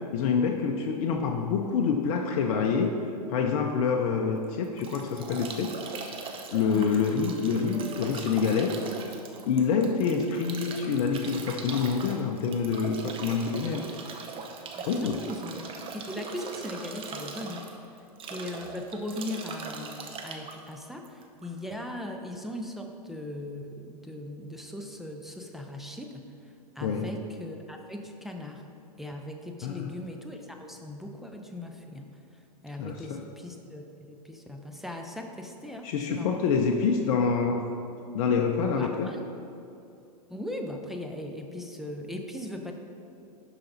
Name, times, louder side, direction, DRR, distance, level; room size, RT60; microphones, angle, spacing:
voice 1, 0.1-2.9 3.3-6.2 6.5-8.8 9.5-13.8 14.9-15.2 26.8-27.1 29.6-29.9 32.8-33.2 35.8-37.7 38.1-39.1, left 5 dB, 55° left, 3 dB, 0.7 m, -27 dB
Bathtub (filling or washing) / Drip / Trickle dribble, 4.4-21.6, right 4 dB, 25° right, 0.8 m, -41 dB
voice 2, 6.7-7.1 13.3-13.4 13.7-14.1 14.7-17.7 18.3-28.6 29.0-36.5 38.7-39.2 40.3-42.7, left 1 dB, ahead, 2 dB, 0.5 m, -39 dB
Harp, 7.6-11.0 11.4-12.5, right 6 dB, 60° right, 2.1 m, -50 dB
11.5 x 5.0 x 4.0 m, 2.6 s
hypercardioid pair, 115°, 20 cm